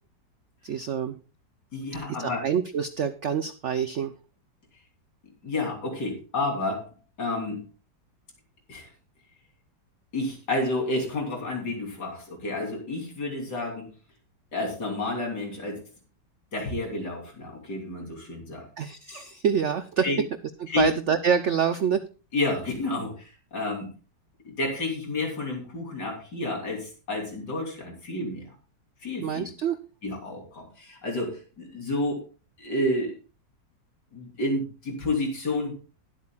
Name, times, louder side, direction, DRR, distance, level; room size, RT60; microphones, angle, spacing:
voice 1, 0.6-1.2 2.2-4.1 18.8-20.1 20.6-22.0 29.2-29.8, right 7 dB, 70° right, 11 dB, 0.7 m, -26 dB
voice 2, 1.7-2.4 5.4-6.9 7.2-7.6 8.7-8.9 10.1-13.9 14.5-15.8 16.5-18.7 20.0-20.2 20.7-20.9 22.3-23.9 24.5-28.5 29.0-29.5 30.0-32.2 32.6-33.1 34.1-35.7, left 2 dB, 65° left, 1 dB, 3.8 m, -30 dB
20.5 x 8.4 x 2.3 m, 0.33 s
omnidirectional pair, 2.0 m